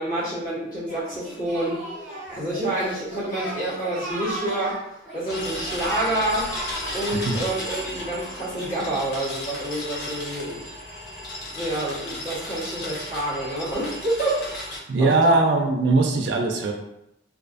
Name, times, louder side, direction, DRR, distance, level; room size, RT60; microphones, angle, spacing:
voice 1, 0.0-1.8 2.3-4.8 5.1-6.5 6.9-10.8 11.5-14.5 15.0-15.5, right 1 dB, 45° left, -10 dB, 1.2 m, -28 dB
Singing, 0.9-9.2, right 1 dB, ahead, 0.7 m, -37 dB
sound 1, 5.2-14.8, left 1 dB, 60° left, 0.7 m, -35 dB
voice 2, 7.1-7.4 14.9-16.7, right 3 dB, 65° right, 2 dB, 0.3 m, -20 dB
2.4 x 2.4 x 2.4 m, 0.82 s
head